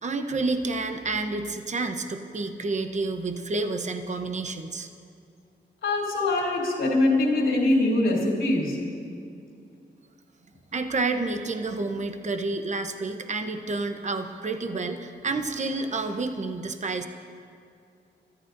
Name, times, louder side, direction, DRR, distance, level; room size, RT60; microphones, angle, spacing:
voice 1, 0.0-4.9 10.7-17.1, right 3 dB, 35° right, 6 dB, 0.9 m, -29 dB
voice 2, 5.8-8.8, left 2 dB, 85° left, -2 dB, 3.2 m, -23 dB
28.0 x 14.0 x 2.6 m, 2.4 s
wide cardioid pair, 110°, 20 cm